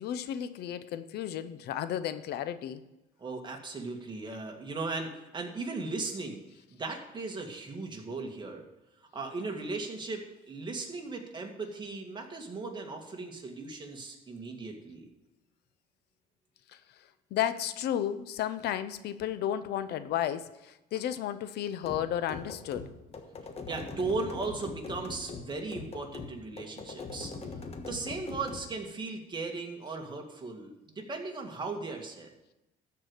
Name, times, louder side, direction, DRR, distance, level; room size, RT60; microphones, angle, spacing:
voice 1, 0.0-2.8 16.7-16.8 17.3-22.9, left 10 dB, 75° left, 13 dB, 0.7 m, -33 dB
voice 2, 3.2-6.4 6.7-8.7 9.1-15.1 23.7-27.3 27.9-32.3, right 3 dB, 25° right, 2 dB, 2.1 m, -37 dB
sound 1, 21.8-28.7, left 4 dB, 35° left, 1.3 m, -42 dB
13.5 x 4.8 x 8.2 m, 0.95 s
cardioid pair, 110°, 17 cm